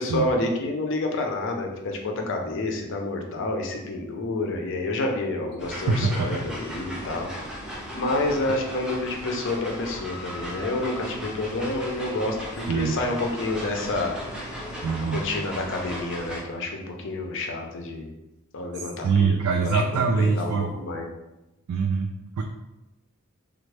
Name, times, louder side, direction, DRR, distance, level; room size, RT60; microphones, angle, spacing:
voice 1, 0.0-7.3 7.7-14.1 15.0-18.1 18.5-21.1, left 2 dB, 60° left, 2 dB, 0.5 m, -29 dB
sound 1, 5.6-16.4, equal, 5° right, 0.5 m, -36 dB
voice 2, 5.9-6.3 12.7-13.0 14.8-15.2 18.8-20.7 21.7-22.4, right 5 dB, 75° right, 2 dB, 0.3 m, -24 dB
3.4 x 2.0 x 3.2 m, 0.96 s
head